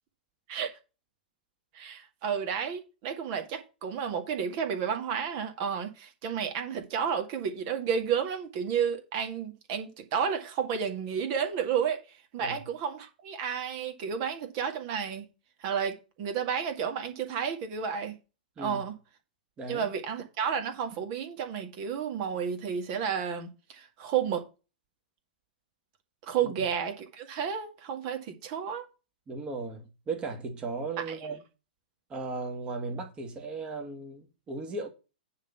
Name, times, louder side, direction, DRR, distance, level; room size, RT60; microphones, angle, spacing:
voice 1, 1.7-12.0 12.3-15.3 15.6-18.1 18.6-18.9 19.7-24.4 26.3-28.9, right 7 dB, 40° right, 2.1 m, -31 dB
voice 2, 19.6-19.9 26.4-26.5 29.3-31.4 32.1-34.9, right 3 dB, 20° right, 2.0 m, -36 dB
9.6 x 3.9 x 7.0 m
figure-of-eight pair, 110°, 5 cm